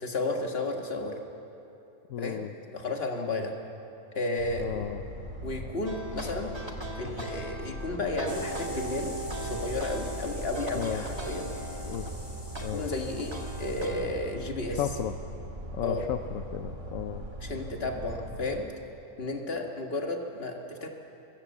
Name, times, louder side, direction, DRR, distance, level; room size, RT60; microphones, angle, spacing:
voice 1, 0.0-1.2 2.2-3.5 4.2-4.9 5.4-6.5 7.0-9.1 9.4-11.5 12.7-14.8 15.8-16.1 17.4-18.6 19.2-20.9, left 2 dB, 45° left, 3 dB, 1.9 m, -33 dB
voice 2, 2.1-2.5 4.6-5.0 10.7-11.1 11.8-12.1 12.6-12.9 14.8-15.1 15.7-17.2, left 10 dB, 70° left, 8 dB, 1.1 m, -34 dB
sound 1, 4.4-18.5, equal, 60° right, 2.8 m, -40 dB
sound 2, 5.9-10.2 10.5-12.2 12.6-14.1, right 1 dB, 20° right, 1.7 m, -41 dB
sound 3, 8.3-13.9, right 2 dB, 20° left, 1.4 m, -41 dB
24.5 x 15.0 x 7.2 m, 2.9 s
omnidirectional pair, 1.5 m